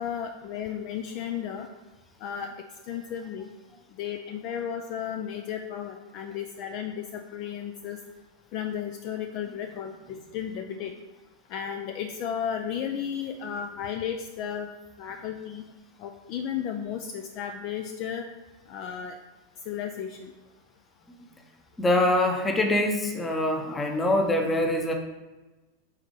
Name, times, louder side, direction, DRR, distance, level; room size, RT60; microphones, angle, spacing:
voice 1, 0.0-1.7 2.2-2.5 2.9-3.5 4.0-8.0 8.5-10.9 11.5-14.7 15.0-15.6 16.0-18.2 18.7-19.2 19.7-20.3, left 8 dB, 40° left, 5 dB, 0.4 m, -34 dB
voice 2, 21.8-24.9, left 1 dB, 15° left, 3 dB, 0.8 m, -24 dB
4.9 x 4.1 x 4.9 m, 1.1 s
figure-of-eight pair, 90°, 0 cm